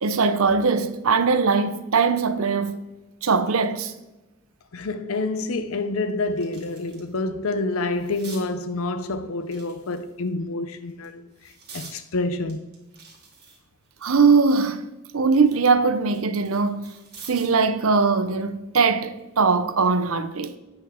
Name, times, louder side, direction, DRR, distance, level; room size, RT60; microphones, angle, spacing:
voice 1, 0.0-2.8 3.2-3.9 14.0-14.8 15.1-16.8 17.3-20.6, right 4 dB, 75° right, 0.7 m, -21 dB
voice 2, 4.7-11.2 11.7-12.6, left 2 dB, 75° left, 0.6 m, -27 dB
sound 1, 5.2-5.3 5.7-7.2 7.5-8.5 9.4-10.3 10.9-12.0 12.5-14.7 15.1-17.6 19.0-19.2, right 4 dB, 50° right, 2.5 m, -47 dB
8.8 x 6.2 x 3.7 m
head